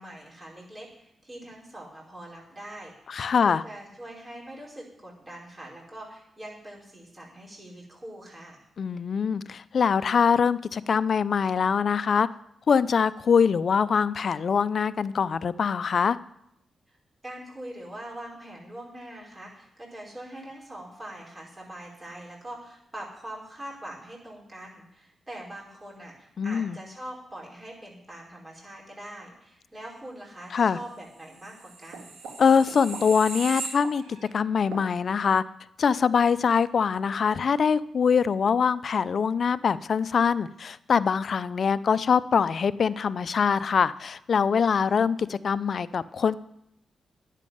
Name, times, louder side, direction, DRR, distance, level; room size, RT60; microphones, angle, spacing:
voice 1, 0.0-8.7 16.9-17.0 17.2-32.1, right 1 dB, 30° right, -3 dB, 4.9 m, -43 dB
voice 2, 3.1-3.6 8.8-12.3 12.7-16.2 26.4-26.8 30.5-30.8 32.4-34.0 34.3-35.4 35.8-46.4, left 6 dB, 60° left, 16 dB, 0.5 m, -23 dB
sound 1, 31.4-34.3 34.7-34.9, right 4 dB, 85° right, 2.1 m, -38 dB
10.5 x 7.5 x 9.4 m, 0.79 s
supercardioid pair, 55°, 0 cm